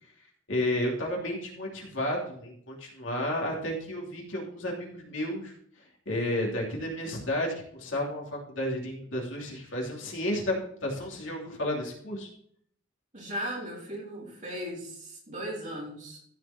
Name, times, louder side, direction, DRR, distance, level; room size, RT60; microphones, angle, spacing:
voice 1, 0.5-5.5 6.0-12.3, left 1 dB, 70° left, -1 dB, 2.9 m, -32 dB
voice 2, 13.1-16.2, equal, 40° right, -5 dB, 4.2 m, -37 dB
14.5 x 5.3 x 4.3 m, 0.65 s
head